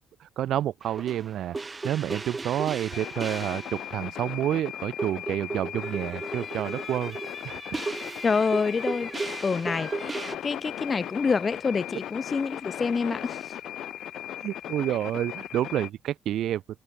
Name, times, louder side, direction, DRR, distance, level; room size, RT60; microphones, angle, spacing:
voice 1, 0.2-1.6 1.8-7.2 7.4-7.8 14.4-16.6, right 12 dB, 75° right, 0.3 m, -29 dB
sound 1, 0.8-4.0 4.3-4.4 4.7-10.4, right 3 dB, 25° right, 1.9 m, -36 dB
sound 2, 2.9-15.9, left 11 dB, 75° left, 0.9 m, -38 dB
voice 2, 8.2-9.2 9.4-13.5, left 5 dB, 35° left, 1.3 m, -27 dB
cardioid pair, 90°, 0 cm